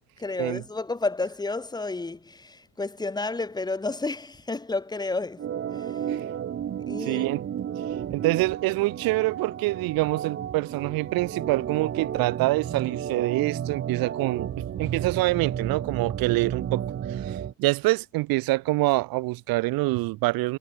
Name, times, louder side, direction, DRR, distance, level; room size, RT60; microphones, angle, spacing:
voice 1, 0.2-6.2 6.9-7.3, left 3 dB, 10° left, 2.9 m, -31 dB
Organ, 5.4-17.5, right 9 dB, 30° right, 2.5 m, -32 dB
voice 2, 7.0-7.4 8.1-20.6, right 21 dB, 65° right, 0.9 m, -26 dB
cardioid pair, 165°, 39 cm